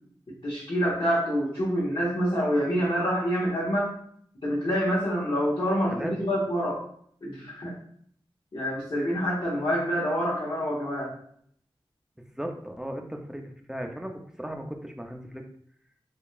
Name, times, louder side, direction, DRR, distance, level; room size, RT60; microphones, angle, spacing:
voice 1, 0.4-3.9 4.4-6.8 7.2-7.7 8.5-11.1, equal, 65° left, -7 dB, 1.3 m, -26 dB
voice 2, 12.4-15.4, equal, 5° right, 3 dB, 0.6 m, -36 dB
3.8 x 3.3 x 2.4 m, 0.64 s
cardioid pair, 45°, 10 cm